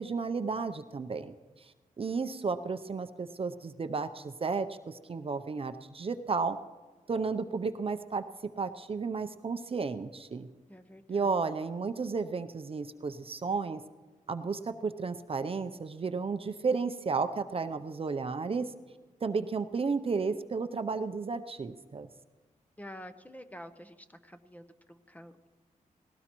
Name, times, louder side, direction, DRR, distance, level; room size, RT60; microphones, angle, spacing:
voice 1, 0.0-6.6 7.1-8.2 8.6-10.5 11.1-13.8 14.3-18.7 19.2-22.1, right 4 dB, 40° right, 9 dB, 0.6 m, -33 dB
voice 2, 10.7-11.3 22.8-25.5, equal, 10° left, 9 dB, 0.7 m, -48 dB
19.0 x 16.5 x 3.0 m, 1.3 s
wide cardioid pair, 90°, 14 cm